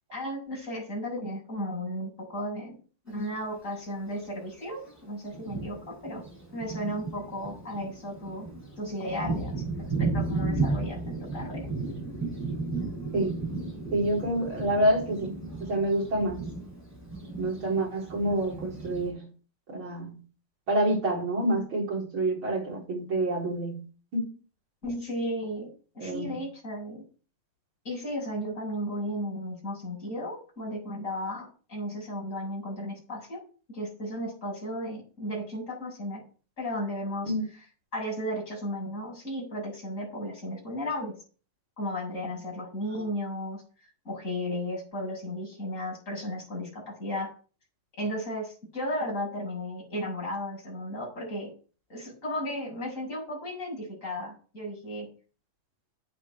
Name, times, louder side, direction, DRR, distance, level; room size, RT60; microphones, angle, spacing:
voice 1, 0.1-2.7 3.1-6.2 6.5-8.5 8.8-9.6 10.0-11.6 24.8-25.7 25.9-27.0 27.8-33.4 33.7-36.2 36.6-37.3 37.9-41.1 41.8-43.6 44.0-47.3 48.0-51.5 51.9-55.1, equal, 20° left, -3 dB, 7.6 m, -34 dB
Thunder, 3.1-3.2 4.2-4.3 4.9-5.0 5.3-19.1, right 3 dB, 5° right, 6.7 m, -34 dB
voice 2, 13.1-13.4 13.9-16.4 17.4-19.3 19.7-20.2 20.7-23.8 24.1-24.3 26.0-26.4 37.3-37.4, right 1 dB, 35° right, -2 dB, 4.9 m, -28 dB
11.0 x 8.7 x 4.7 m, 0.37 s
omnidirectional pair, 4.2 m